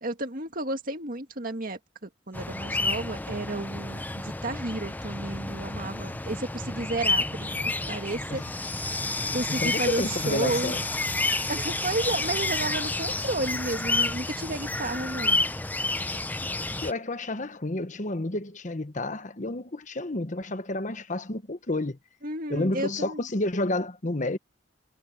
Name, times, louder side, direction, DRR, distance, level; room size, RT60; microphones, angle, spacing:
voice 1, 0.0-8.4 9.3-10.7 11.5-15.4 22.2-23.2, right 2 dB, 50° right, 2.0 m, -32 dB
sound 1, 2.3-16.9, left 2 dB, 10° left, 0.5 m, -30 dB
sound 2, 6.1-12.0, equal, 85° right, 7.2 m, -50 dB
voice 2, 9.5-10.8 16.8-22.0 22.5-24.4, left 2 dB, 40° left, 1.2 m, -30 dB
head